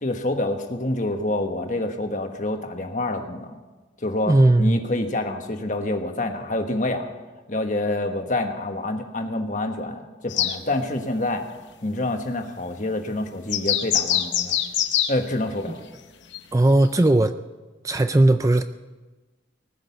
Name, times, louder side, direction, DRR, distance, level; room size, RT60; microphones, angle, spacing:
voice 1, 0.0-3.6 4.0-7.1 7.5-11.4 11.8-14.6 15.1-15.8, left 2 dB, 40° left, 5 dB, 1.3 m, -27 dB
voice 2, 4.2-4.8 16.5-17.4 17.8-18.6, right 2 dB, 15° right, 10 dB, 0.4 m, -17 dB
sound 1, 10.3-10.6 13.5-15.1 16.3-16.4 17.1-17.2, left 11 dB, 75° left, 0.9 m, -23 dB
19.5 x 6.5 x 9.5 m, 1.2 s
head